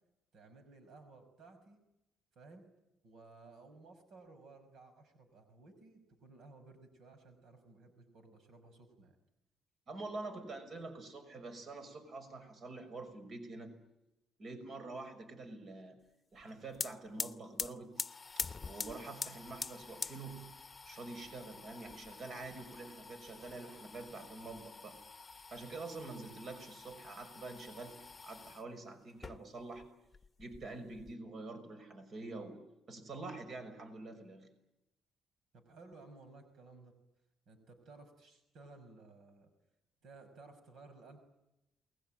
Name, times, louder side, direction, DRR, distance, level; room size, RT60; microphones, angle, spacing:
voice 1, 0.3-1.8 2.4-2.6 3.0-9.2 35.5-36.9 37.5-39.5 40.0-41.2, right 3 dB, 75° right, 7 dB, 5.6 m, -57 dB
voice 2, 9.9-13.7 14.4-16.0 16.3-18.0 18.7-20.5 20.9-25.0 25.5-29.9 30.4-32.6 32.9-34.5, right 3 dB, 55° right, 8 dB, 5.9 m, -46 dB
sound 1, 16.4-16.5 16.7-28.6 29.1-29.9 30.1-31.1, left 4 dB, 30° left, 0.9 m, -45 dB
30.0 x 21.0 x 9.1 m, 0.89 s
cardioid pair, 90°, 0 cm